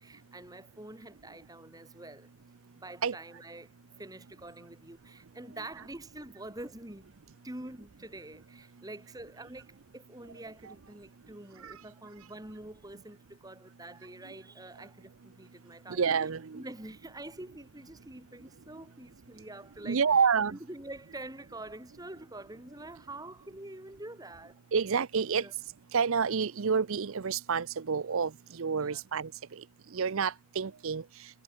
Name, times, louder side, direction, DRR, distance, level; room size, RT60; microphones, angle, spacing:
voice 1, 0.0-2.3 2.7-3.7 4.0-7.2 7.4-16.1 16.5-20.0 20.5-24.6 25.3-25.5 28.8-29.0, right 1 dB, 15° right, 1.8 m, -46 dB
voice 2, 15.9-16.6 19.8-20.6 24.7-25.5 25.9-29.6 29.9-31.4, right 6 dB, 70° right, 0.6 m, -29 dB
head